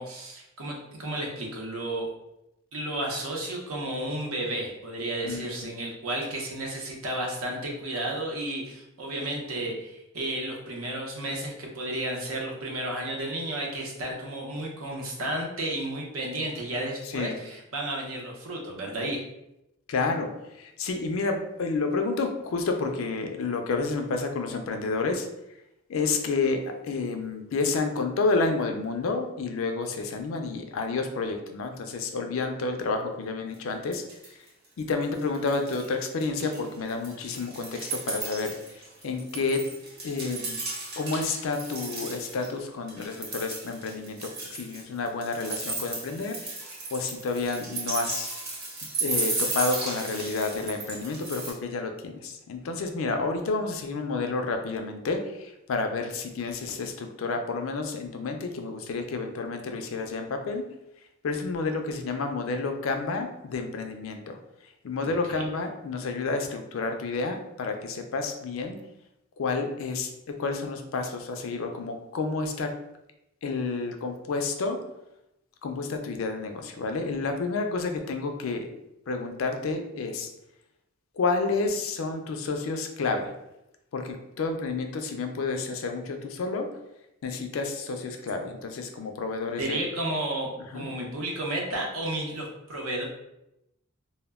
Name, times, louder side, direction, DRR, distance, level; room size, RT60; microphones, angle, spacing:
voice 1, 0.0-2.1 2.7-19.2 65.1-65.4 89.6-93.0, right 1 dB, 80° right, 0 dB, 0.7 m, -32 dB
voice 2, 5.2-5.7 17.0-17.4 19.9-25.3 25.9-34.0 34.8-39.7 40.0-40.6 41.0-46.5 46.9-48.3 49.0-60.7 61.2-64.4 64.8-68.8 69.4-72.7 73.4-74.8 75.6-78.7 79.1-80.3 81.2-83.3 83.9-86.7 87.2-89.8 90.7-90.9, left 3 dB, 70° left, 5 dB, 0.4 m, -30 dB
sound 1, 33.5-33.6 33.9-34.5 34.8-35.9 36.2-42.5 42.9-51.5, right 3 dB, 50° right, 0.8 m, -35 dB
2.1 x 2.1 x 3.4 m, 0.86 s
head